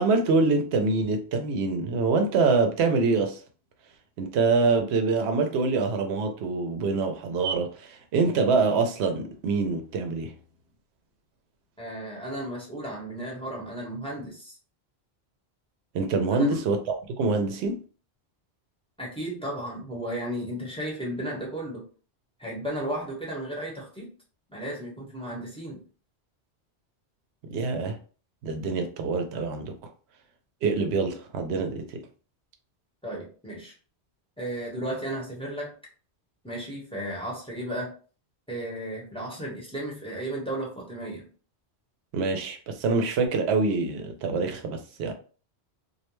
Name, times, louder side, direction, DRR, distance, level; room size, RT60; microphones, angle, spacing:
voice 1, 0.0-3.4 4.2-10.3 15.9-17.8 27.5-28.0 28.4-29.7 30.6-32.0 42.1-45.1, right 4 dB, 80° right, 0.8 m, -25 dB
voice 2, 11.8-14.6 16.3-16.7 19.0-21.8 22.4-24.1 24.5-25.8 33.0-33.7 34.4-35.7 36.4-37.9 38.5-41.3, right 1 dB, 5° left, 0.8 m, -34 dB
2.5 x 2.1 x 3.0 m
omnidirectional pair, 1.1 m